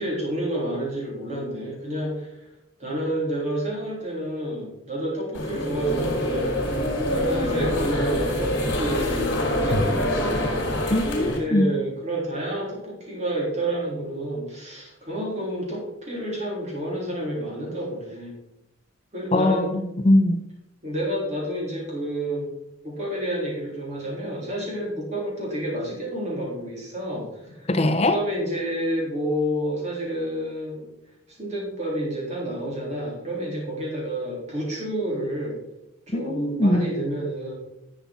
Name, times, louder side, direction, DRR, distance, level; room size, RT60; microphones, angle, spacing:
voice 1, 0.0-2.4 2.8-10.6 11.3-18.4 19.1-19.7 20.8-22.5 22.8-27.7 28.0-30.9 31.3-35.6 36.1-37.5, right 1 dB, 35° right, -3 dB, 3.6 m, -29 dB
sound 1, 5.3-11.4, left 1 dB, 55° left, 3.8 m, -25 dB
voice 2, 10.9-11.7 19.3-20.4 27.7-28.2 36.1-36.8, left 1 dB, 30° left, 8 dB, 0.7 m, -21 dB
11.0 x 7.1 x 4.5 m, 0.89 s
head